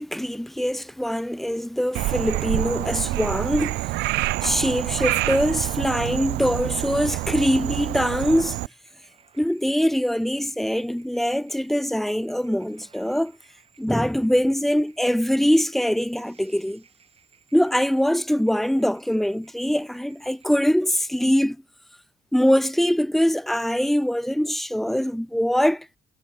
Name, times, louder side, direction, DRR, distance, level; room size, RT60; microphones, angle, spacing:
voice 1, 0.0-3.9 4.4-8.6 9.4-13.3 13.8-16.8 17.5-21.6 22.3-25.9, equal, ahead, 0.3 m, -23 dB
sound 1, 1.9-20.7, right 6 dB, 35° right, 7.7 m, -59 dB
Frog, 1.9-8.7, right 20 dB, 85° right, 0.5 m, -27 dB
cardioid pair, 110°, 17 cm